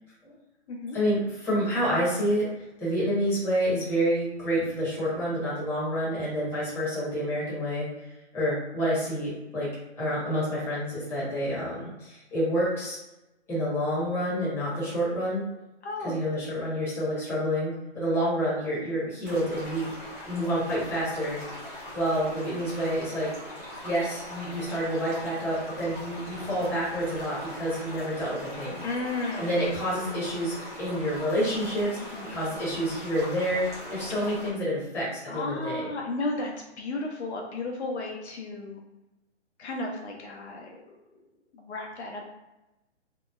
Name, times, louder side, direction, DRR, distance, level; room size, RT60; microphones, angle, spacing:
voice 1, 0.9-7.9 8.3-9.7 10.0-13.0 13.5-15.4 16.0-19.9 20.3-21.4 21.9-23.3 23.8-28.8 29.4-32.0 32.3-33.6 33.9-35.9, equal, 5° left, -9 dB, 0.9 m, -28 dB
voice 2, 15.8-16.1 28.8-29.5 32.1-32.4 35.3-38.8 39.6-41.0 41.5-42.3, left 2 dB, 70° left, 0 dB, 0.7 m, -34 dB
sound 1, 19.2-34.5, left 1 dB, 15° right, 0.3 m, -41 dB
2.9 x 2.0 x 2.3 m, 0.98 s
hypercardioid pair, 135°, 35 cm